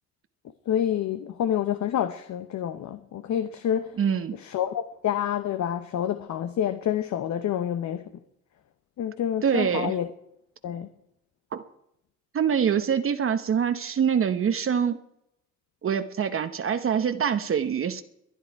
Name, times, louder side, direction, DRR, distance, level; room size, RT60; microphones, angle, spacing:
voice 1, 0.7-4.0 4.3-8.1 9.0-10.1 10.6-10.9, left 10 dB, 70° left, 0.9 m, -28 dB
voice 2, 4.0-4.3 9.4-9.9 11.5-11.6 12.3-15.0 15.8-18.0, right 7 dB, 45° right, 0.9 m, -25 dB
22.5 x 10.0 x 4.7 m
cardioid pair, 90°, 30 cm